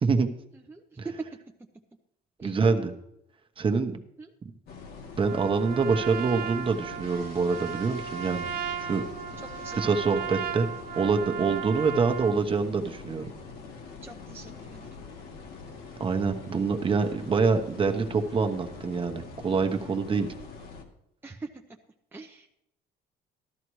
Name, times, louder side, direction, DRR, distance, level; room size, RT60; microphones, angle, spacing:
voice 1, 0.7-1.0 2.4-2.5 4.2-4.3 9.6-9.8 14.0-14.9 21.2-21.5 22.1-22.6, right 3 dB, 15° right, 1 dB, 0.8 m, -44 dB
voice 2, 2.4-2.9 3.6-3.9 5.2-8.5 8.8-9.0 9.7-10.7 10.9-13.3 16.0-20.3, right 4 dB, 30° right, 5 dB, 1.1 m, -25 dB
sound 1, 4.7-20.8, left 5 dB, 65° left, 1.7 m, -44 dB
Trumpet, 5.2-12.5, right 8 dB, 55° right, 0.9 m, -36 dB
13.5 x 12.5 x 3.2 m, 0.80 s
cardioid pair, 110°, 17 cm